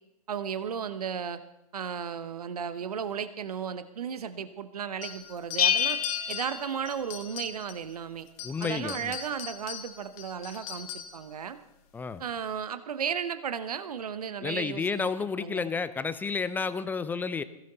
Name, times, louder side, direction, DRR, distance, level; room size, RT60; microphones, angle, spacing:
voice 1, 0.3-1.4 1.7-6.0 6.3-8.3 8.6-11.6 12.2-15.1 15.4-15.7, right 7 dB, 75° right, 13 dB, 1.1 m, -34 dB
sound 1, 5.0-7.9 8.3-11.3, left 8 dB, 35° left, 1.9 m, -40 dB
Bell, 5.6-7.4, left 8 dB, 75° left, 1.0 m, -28 dB
voice 2, 8.4-9.2 11.9-12.2 14.4-17.4, left 5 dB, 10° left, 14 dB, 0.6 m, -31 dB
21.5 x 16.0 x 4.0 m, 0.89 s
hypercardioid pair, 125°, 19 cm